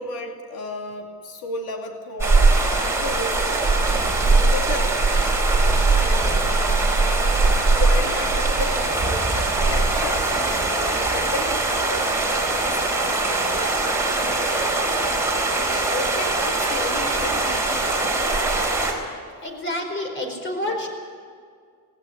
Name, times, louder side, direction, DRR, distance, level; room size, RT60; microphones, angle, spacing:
voice 1, 0.0-3.6 4.3-5.2 6.0-6.7 7.8-17.9 20.6-20.8, left 3 dB, 80° left, 3 dB, 2.5 m, -34 dB
sound 1, 2.2-18.9, right 3 dB, 5° right, 4.1 m, -21 dB
voice 2, 19.4-20.9, left 1 dB, 30° left, 4 dB, 4.8 m, -28 dB
18.0 x 18.0 x 9.8 m, 2.1 s
cardioid pair, 145°, 37 cm